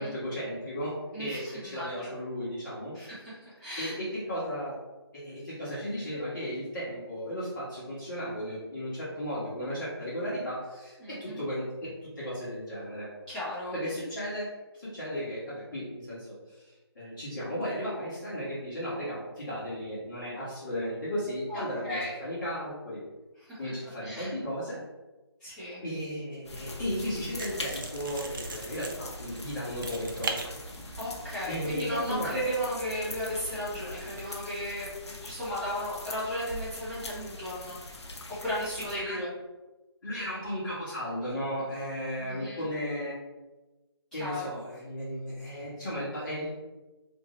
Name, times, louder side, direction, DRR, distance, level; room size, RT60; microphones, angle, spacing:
voice 1, 0.0-2.9 3.8-4.7 5.1-11.9 12.2-13.1 13.7-14.5 14.8-23.0 23.6-24.8 25.8-30.4 31.5-32.4 38.8-39.2 40.0-43.1 44.1-46.5, equal, 50° left, -9 dB, 1.3 m, -35 dB
voice 2, 1.1-2.1 2.9-4.0 11.0-11.4 13.3-13.7 21.5-22.1 23.4-23.6 24.0-24.3 25.4-25.8 31.0-37.8 38.4-39.3 42.2-42.6 44.1-44.5, equal, 5° left, -15 dB, 0.9 m, -35 dB
sound 1, 26.4-39.0, left 1 dB, 90° left, 0.6 m, -42 dB
sound 2, 27.4-34.2, right 3 dB, 50° right, 0.4 m, -41 dB
2.7 x 2.7 x 3.1 m, 1.1 s
figure-of-eight pair, 165°, 14 cm